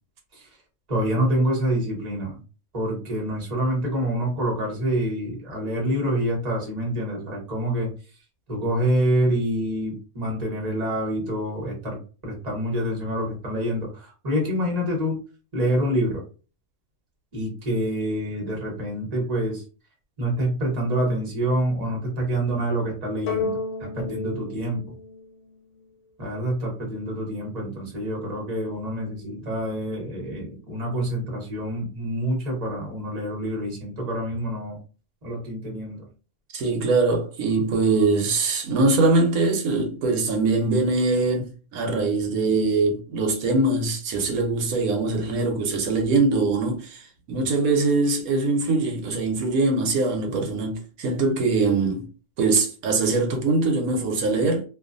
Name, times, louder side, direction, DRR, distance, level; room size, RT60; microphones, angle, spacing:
voice 1, 0.9-2.4 2.7-7.9 8.5-15.2 15.5-16.2 17.3-19.6 20.2-23.6 23.9-24.8 26.2-34.8 35.2-36.1, right 1 dB, 30° right, 1.1 m, -26 dB
sound 1, 23.3-25.9, left 4 dB, 75° left, 1.1 m, -32 dB
voice 2, 36.5-52.1 52.4-54.6, right 3 dB, 80° right, 1.1 m, -22 dB
2.6 x 2.3 x 2.5 m
omnidirectional pair, 1.5 m